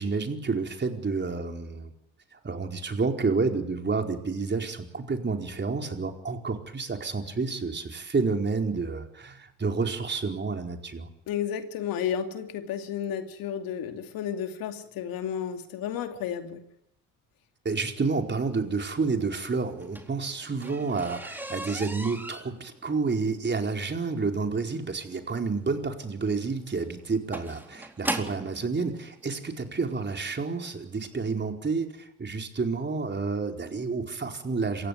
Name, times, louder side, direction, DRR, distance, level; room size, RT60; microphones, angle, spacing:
voice 1, 0.0-1.9 2.3-11.1 17.6-34.9, right 4 dB, 30° right, 4 dB, 4.7 m, -29 dB
voice 2, 11.3-16.6, left 9 dB, 70° left, 7 dB, 2.7 m, -32 dB
sound 1, 19.7-28.6 29.5-29.6 30.1-30.3 30.6-30.7 31.0-31.1, right 1 dB, 5° right, 4.0 m, -38 dB
27.0 x 16.0 x 9.5 m, 0.82 s
hypercardioid pair, 60°, 37 cm